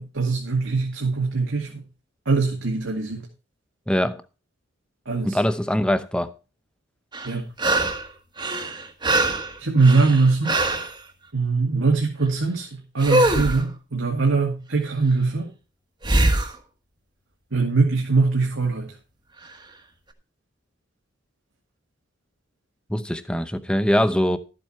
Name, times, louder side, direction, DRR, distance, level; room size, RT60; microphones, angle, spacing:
voice 1, 0.0-1.8 2.3-3.3 5.1-5.4 7.2-7.5 9.6-10.5 11.3-15.5 17.5-18.9, right 4 dB, 85° right, 2.3 m, -22 dB
voice 2, 3.9-4.2 5.2-6.3 22.9-24.4, equal, 5° left, 0.7 m, -22 dB
sound 1, 7.1-8.1 8.4-10.9 13.0-13.6 16.0-16.5 19.5-19.6, right 2 dB, 25° right, 1.4 m, -22 dB
13.0 x 7.7 x 4.4 m
head